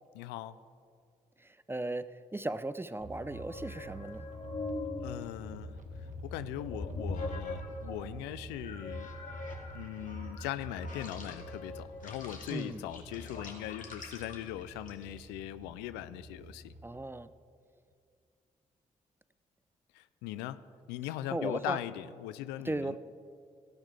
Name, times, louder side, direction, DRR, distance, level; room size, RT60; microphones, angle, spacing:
voice 1, 0.1-0.6 5.0-5.8 6.2-9.1 9.7-16.7 19.9-20.6 20.9-23.0, left 13 dB, 90° left, 15 dB, 0.4 m, -40 dB
voice 2, 1.4-4.3 12.5-12.8 16.8-17.3 21.3-21.8 22.6-23.0, right 2 dB, 15° right, 13 dB, 0.6 m, -36 dB
sound 1, 3.0-17.0, right 2 dB, 50° right, 1.4 m, -48 dB
sound 2, 3.1-8.1 8.6-15.3, left 2 dB, 50° left, 2.6 m, -42 dB
17.0 x 13.0 x 3.4 m, 2.3 s
hypercardioid pair, 45°, 17 cm